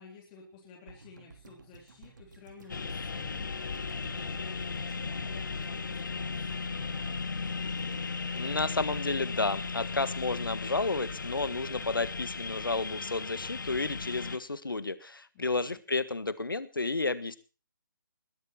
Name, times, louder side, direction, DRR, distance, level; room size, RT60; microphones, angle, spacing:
voice 1, 0.0-7.8 15.3-15.8, left 5 dB, 25° left, -3 dB, 3.6 m, -54 dB
sound 1, 0.9-13.1 13.3-13.4, right 4 dB, 60° right, 3.0 m, -54 dB
sound 2, 2.7-14.4, left 4 dB, 60° left, 1.5 m, -36 dB
voice 2, 8.4-17.4, left 3 dB, 80° left, 14 dB, 1.6 m, -31 dB
20.5 x 8.2 x 5.9 m, 0.36 s
figure-of-eight pair, 145°, 11 cm